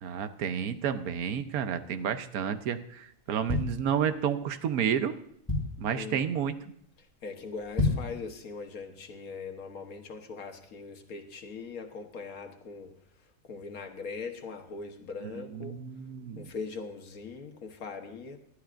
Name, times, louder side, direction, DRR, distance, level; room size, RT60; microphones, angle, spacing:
voice 1, 0.0-5.1 5.8-6.5 15.2-16.5, right 8 dB, 85° right, 10 dB, 1.3 m, -31 dB
sound 1, 3.2-4.4 4.9-5.0 5.2-6.0 6.4-6.7 7.0-7.1 7.6-8.2 8.6-8.7, left 3 dB, 15° left, 5.7 m, -30 dB
voice 2, 5.9-6.3 7.2-12.9 13.4-15.7 16.4-18.4, left 4 dB, 80° left, 4 dB, 1.7 m, -41 dB
19.0 x 12.0 x 2.5 m, 0.71 s
omnidirectional pair, 1.5 m